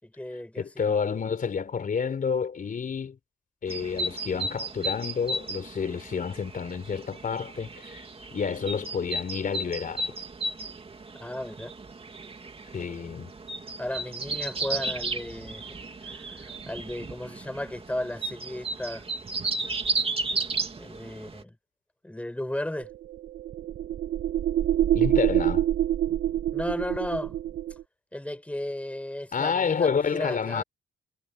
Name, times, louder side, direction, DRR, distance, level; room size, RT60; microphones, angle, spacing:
voice 1, 0.0-0.9 11.1-11.7 13.8-15.6 16.0-19.1 20.8-21.6 22.0-22.9 26.5-27.3 28.1-30.6, left 1 dB, 5° left, 5.7 m, -35 dB
voice 2, 0.6-3.2 3.6-8.0 8.3-10.1 12.7-13.3 24.9-25.6 29.3-30.6, left 6 dB, 45° left, 4.1 m, -29 dB
sound 1, 3.7-21.4, right 2 dB, 30° right, 2.9 m, -34 dB
sound 2, 22.9-27.8, right 12 dB, 65° right, 1.6 m, -26 dB
cardioid pair, 90°, 20 cm